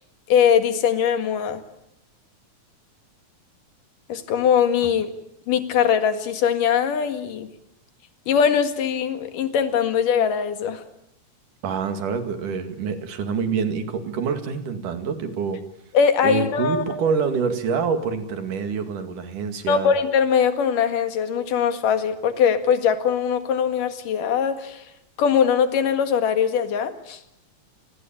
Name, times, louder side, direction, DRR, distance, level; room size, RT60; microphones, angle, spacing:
voice 1, 0.3-1.6 4.1-5.1 5.5-7.5 8.3-10.8 15.9-17.0 19.7-24.8 25.2-27.2, left 7 dB, 85° left, 9 dB, 3.5 m, -21 dB
voice 2, 11.6-15.6 16.2-19.9, right 6 dB, 75° right, 8 dB, 3.8 m, -26 dB
28.5 x 21.0 x 8.9 m, 0.79 s
omnidirectional pair, 3.7 m